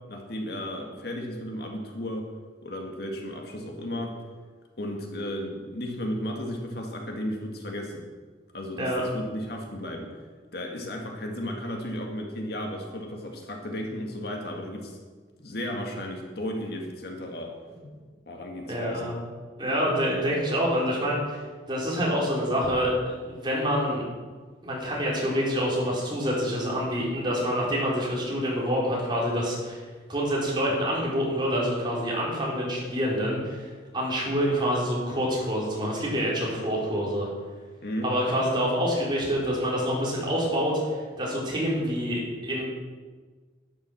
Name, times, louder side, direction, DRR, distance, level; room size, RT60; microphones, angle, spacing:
voice 1, 0.1-2.3 2.6-4.2 4.8-8.0 8.5-10.1 10.5-15.0 15.4-17.5 18.3-19.1 37.8-38.1, left 1 dB, 55° left, 2 dB, 2.0 m, -34 dB
voice 2, 18.7-19.1 19.6-22.9 23.2-24.0 24.6-37.3 38.0-42.6, equal, 25° right, -4 dB, 4.0 m, -27 dB
12.0 x 10.0 x 6.4 m, 1.4 s
head